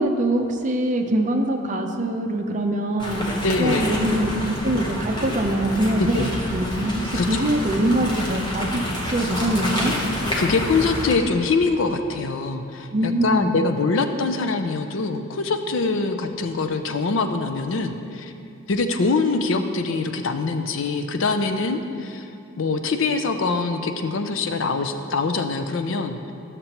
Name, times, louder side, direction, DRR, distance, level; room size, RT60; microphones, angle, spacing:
voice 1, 0.0-3.2 3.6-8.8 9.1-9.9 12.9-13.5, right 1 dB, 35° right, 4 dB, 0.6 m, -23 dB
sound 1, 3.0-11.1, equal, 20° left, 1.0 m, -28 dB
voice 2, 3.4-3.9 6.0-6.3 7.1-7.5 10.0-18.3 18.7-22.3 22.6-26.3, left 3 dB, 65° left, 7 dB, 0.5 m, -24 dB
12.5 x 6.7 x 2.9 m, 2.6 s
head